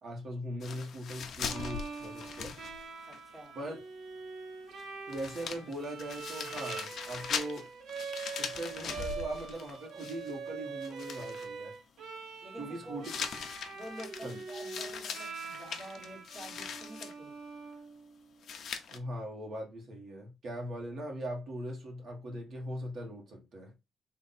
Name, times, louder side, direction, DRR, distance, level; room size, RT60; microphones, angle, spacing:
voice 1, 0.0-2.6 3.5-3.8 5.1-7.7 8.4-11.8 12.6-13.1 14.2-14.4 18.9-23.7, right 1 dB, 45° right, 1.3 m, -40 dB
sound 1, 0.6-3.2 3.5-3.6 4.8-4.9 5.1-10.5 10.8-11.5 13.0-17.1 18.4-19.0, left 6 dB, 50° left, 0.6 m, -41 dB
Bowed string instrument, 1.5-18.4, right 5 dB, 85° right, 1.1 m, -44 dB
voice 2, 3.1-3.6 12.4-13.1 13.7-17.3, equal, 10° right, 1.5 m, -48 dB
3.8 x 2.6 x 4.1 m
cardioid pair, 175°, 0 cm